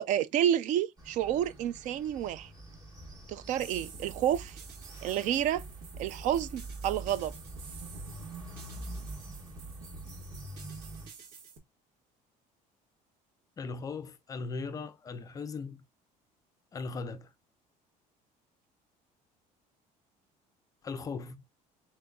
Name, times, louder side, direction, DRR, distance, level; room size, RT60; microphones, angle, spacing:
voice 1, 0.0-2.5 3.3-4.6 5.0-5.6 6.0-7.3, right 10 dB, 55° right, 0.4 m, -29 dB
sound 1, 1.0-11.1, right 2 dB, 25° right, 1.2 m, -45 dB
sound 2, 3.6-11.6, right 4 dB, 70° right, 1.3 m, -48 dB
voice 2, 13.6-15.8 16.7-17.3 20.8-21.4, left 4 dB, 20° left, 0.4 m, -38 dB
4.4 x 3.7 x 2.2 m
cardioid pair, 170°, 16 cm